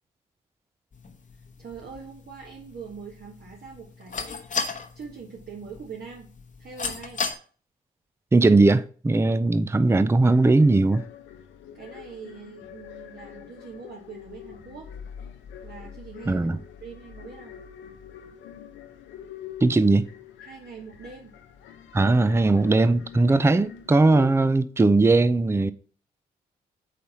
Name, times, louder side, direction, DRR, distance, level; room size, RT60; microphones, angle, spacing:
sound 1, 0.9-7.3, left 5 dB, 40° left, 1.0 m, -36 dB
voice 1, 1.6-4.6 4.9-6.3 6.6-7.2 11.7-14.9 15.6-16.5 16.8-17.6 20.4-21.3, right 6 dB, 55° right, 1.4 m, -43 dB
voice 2, 8.3-11.0 16.3-16.6 19.6-20.1 21.9-25.7, right 2 dB, 15° right, 0.5 m, -19 dB
sound 2, 10.2-24.3, left 9 dB, 75° left, 0.7 m, -44 dB
5.0 x 4.1 x 5.8 m
hypercardioid pair, 45°, 19 cm